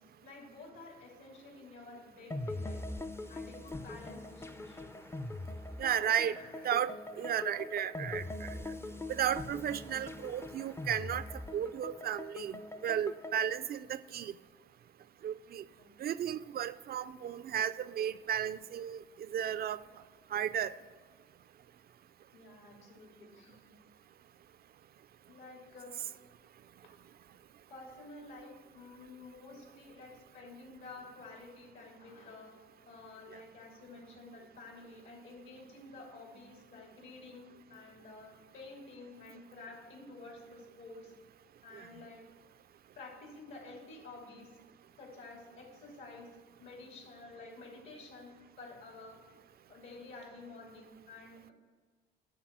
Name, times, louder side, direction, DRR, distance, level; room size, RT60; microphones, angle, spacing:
voice 1, 0.0-2.8 3.3-4.9 5.9-6.7 7.1-7.4 11.2-11.3 15.7-15.9 22.3-23.7 25.3-26.1 27.7-32.6 32.9-41.2 41.6-42.3 43.0-44.6 45.0-49.2 49.7-51.5, left 3 dB, 80° left, -1 dB, 2.9 m, -51 dB
sound 1, 2.3-13.6, left 2 dB, 10° left, 0.4 m, -42 dB
voice 2, 5.8-6.4 6.6-8.5 9.1-11.2 11.5-14.3 15.2-15.6 16.0-19.0 19.3-19.8 20.3-20.7, right 9 dB, 50° right, 15 dB, 0.4 m, -34 dB
10.0 x 4.2 x 7.5 m, 1.4 s
cardioid pair, 90°, 20 cm